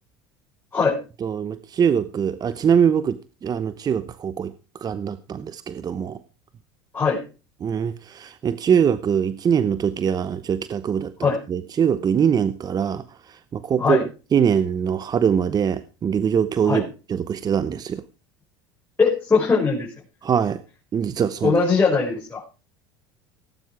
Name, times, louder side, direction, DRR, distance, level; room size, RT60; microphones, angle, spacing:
voice 1, 1.2-4.5 4.8-6.2 7.6-18.0 20.2-20.6 20.9-21.6, right 7 dB, 35° right, 0.9 m, -23 dB
voice 2, 19.0-19.9 21.4-22.4, left 4 dB, 20° left, 5.7 m, -20 dB
17.5 x 9.2 x 4.7 m
hypercardioid pair, 90°, 12 cm